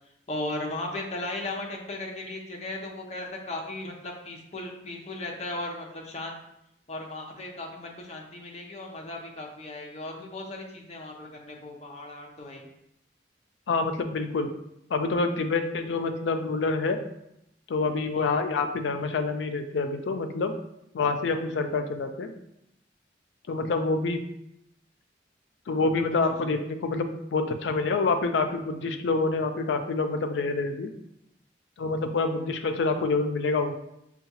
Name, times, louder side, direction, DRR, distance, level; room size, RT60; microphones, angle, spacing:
voice 1, 0.3-6.4 6.9-12.7 18.1-18.3, left 2 dB, 35° left, 0 dB, 0.6 m, -36 dB
voice 2, 13.7-14.5 14.9-17.0 17.7-20.6 20.9-22.3 23.5-24.2 25.7-30.9 31.8-33.7, left 3 dB, 85° left, 7 dB, 0.4 m, -27 dB
5.6 x 2.3 x 2.8 m, 0.80 s
head